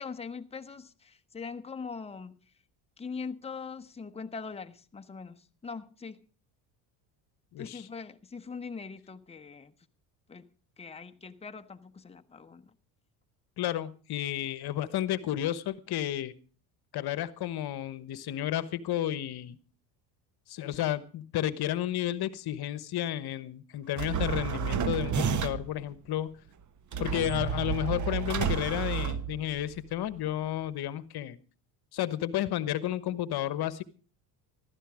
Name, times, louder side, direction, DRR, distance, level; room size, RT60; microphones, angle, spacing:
voice 1, 0.0-2.4 3.0-6.2 7.6-9.7 10.3-10.5 10.8-12.7, left 5 dB, 10° left, 1.1 m, -42 dB
voice 2, 7.5-7.9 13.6-16.3 16.9-19.6 20.5-26.3 27.0-31.4 31.9-33.8, left 12 dB, 50° left, 1.2 m, -32 dB
sound 1, 24.0-25.8 26.9-29.8, right 7 dB, 35° right, 1.2 m, -31 dB
14.5 x 12.5 x 4.9 m
supercardioid pair, 90°, 48 cm